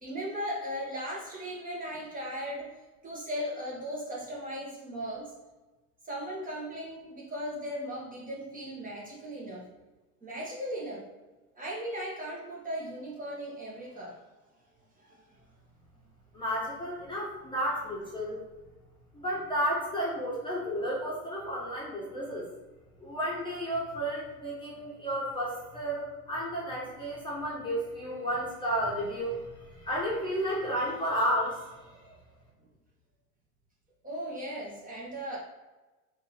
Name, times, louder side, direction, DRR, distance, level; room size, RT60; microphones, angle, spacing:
voice 1, 0.0-5.3 6.1-9.6 10.2-11.0 11.6-14.2 15.0-15.2 34.0-35.4, equal, 20° right, -4 dB, 1.4 m, -37 dB
voice 2, 16.3-18.4 19.1-22.4 23.0-29.5 29.8-31.6, equal, 10° left, -6 dB, 1.2 m, -32 dB
3.6 x 2.7 x 4.3 m, 1.1 s
hypercardioid pair, 90°, 44 cm